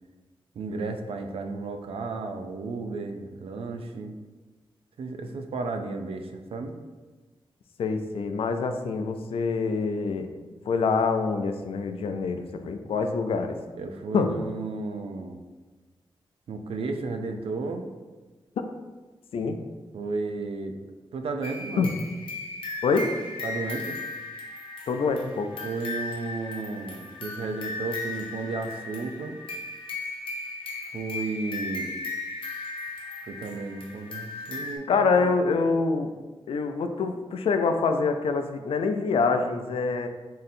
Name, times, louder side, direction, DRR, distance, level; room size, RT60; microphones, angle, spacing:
voice 1, 0.6-4.1 5.0-6.8 13.7-15.4 16.5-17.8 19.9-20.7 21.1-21.9 23.4-24.0 25.6-29.4 30.9-31.9 33.2-35.3, right 3 dB, 90° right, 5 dB, 0.4 m, -33 dB
voice 2, 7.8-10.3 10.7-13.6 14.1-14.3 18.6-18.7 19.3-19.6 21.8-21.9 22.8-23.1 24.9-25.5 34.9-36.1 36.5-40.1, left 4 dB, 90° left, 7 dB, 0.4 m, -25 dB
sound 1, 21.4-34.8, left 3 dB, 70° left, 0.8 m, -36 dB
3.7 x 2.6 x 4.1 m, 1.3 s
wide cardioid pair, 130°, 9 cm